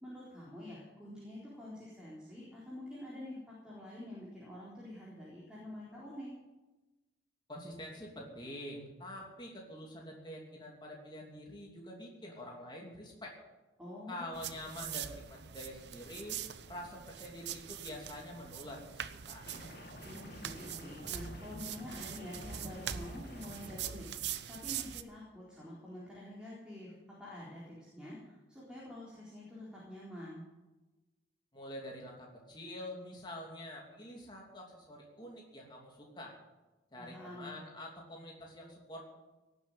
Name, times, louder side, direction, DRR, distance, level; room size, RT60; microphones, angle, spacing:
voice 1, 0.0-6.3 13.8-14.3 20.0-30.4 37.0-37.5, left 1 dB, 5° right, -7 dB, 3.9 m, -47 dB
voice 2, 7.5-13.3 14.1-16.4 16.7-19.0 19.3-19.5 31.5-36.3 36.9-39.0, left 1 dB, 25° left, -1 dB, 2.9 m, -46 dB
sound 1, 14.3-25.0, right 9 dB, 65° right, 0.8 m, -43 dB
sound 2, 19.5-23.8, left 1 dB, 55° left, 1.9 m, -50 dB
18.0 x 8.2 x 9.1 m, 1.1 s
head